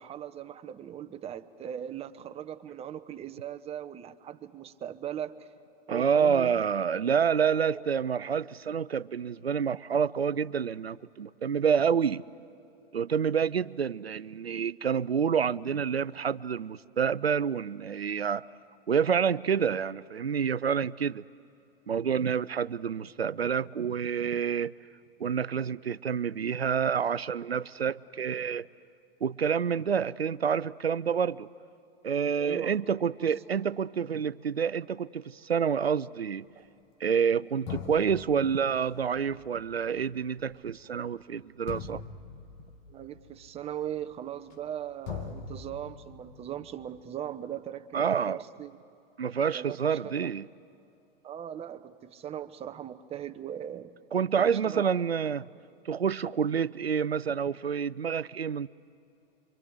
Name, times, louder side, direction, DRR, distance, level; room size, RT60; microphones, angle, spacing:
voice 1, 0.0-5.5 5.9-6.6 7.4-7.9 32.4-32.8 33.2-33.6 36.6-36.7 42.9-48.7 49.5-50.3 51.2-53.9 54.4-54.9, right 10 dB, 20° right, 9 dB, 0.9 m, -39 dB
voice 2, 5.9-12.2 12.9-18.4 18.9-21.2 21.9-24.7 25.2-28.7 29.2-31.5 32.0-36.4 37.0-42.0 47.9-48.4 49.2-50.5 54.1-55.5 55.9-58.7, right 7 dB, 90° right, 19 dB, 0.5 m, -28 dB
sound 1, 37.1-37.2 37.7-44.8 45.0-47.1, left 6 dB, 50° left, 2.3 m, -43 dB
27.0 x 25.0 x 7.9 m, 2.7 s
figure-of-eight pair, 100°, 30 cm